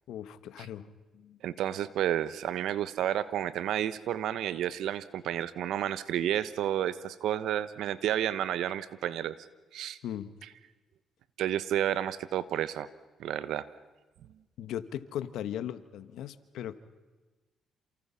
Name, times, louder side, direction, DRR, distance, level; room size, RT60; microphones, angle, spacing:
voice 1, 0.1-1.4 10.0-10.3 14.6-16.8, left 10 dB, 80° left, 12 dB, 1.4 m, -38 dB
voice 2, 1.4-9.3 9.7-10.0 11.4-12.9 13.2-13.7, right 11 dB, 80° right, 15 dB, 1.1 m, -31 dB
29.0 x 28.0 x 5.8 m, 1.2 s
cardioid pair, 90°, 0 cm